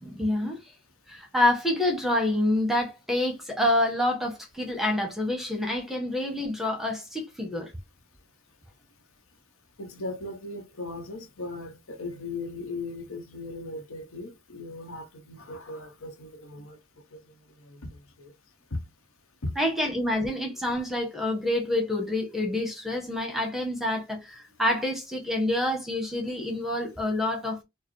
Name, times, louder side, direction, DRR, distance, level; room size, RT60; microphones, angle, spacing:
voice 1, 0.0-0.7 1.1-7.7 19.6-27.6, left 1 dB, ahead, 0.8 m, -27 dB
voice 2, 9.8-16.8 17.1-17.2 17.7-17.9 18.2-18.3 18.7-18.8 19.4-19.5, left 2 dB, 75° left, 0.9 m, -37 dB
4.5 x 2.0 x 3.1 m
head